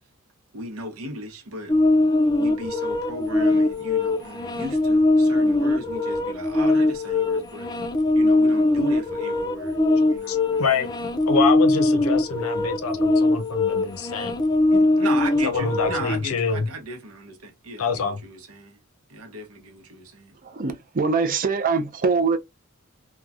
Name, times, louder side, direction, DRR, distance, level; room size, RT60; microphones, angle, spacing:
voice 1, 0.5-1.8 2.4-7.7 8.1-9.8 10.1-10.7 14.7-18.8 19.1-20.3, right 1 dB, 85° right, 0.9 m, -36 dB
sound 1, 1.7-16.2, left 2 dB, 20° left, 0.4 m, -21 dB
voice 2, 10.3-10.9 11.3-14.4 15.4-16.7 17.8-18.2, left 5 dB, 85° left, 0.6 m, -26 dB
voice 3, 20.4-22.4, right 4 dB, 40° right, 0.4 m, -23 dB
3.0 x 2.2 x 2.4 m
head